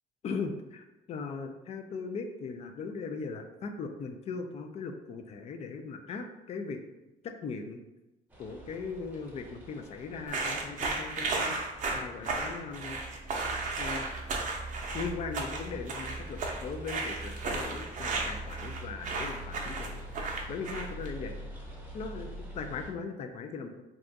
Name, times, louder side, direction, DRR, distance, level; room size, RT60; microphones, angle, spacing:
voice 1, 0.2-6.8 7.2-7.8 8.4-11.6 11.9-13.0 13.8-14.1 14.9-20.0 20.5-21.3 21.9-23.8, left 4 dB, 40° left, 5 dB, 0.4 m, -39 dB
sound 1, 8.3-22.9, right 1 dB, 10° right, 0.7 m, -44 dB
sound 2, 10.3-21.1, right 3 dB, 50° right, 0.6 m, -34 dB
2.4 x 2.3 x 3.9 m, 1.0 s
cardioid pair, 110°, 17 cm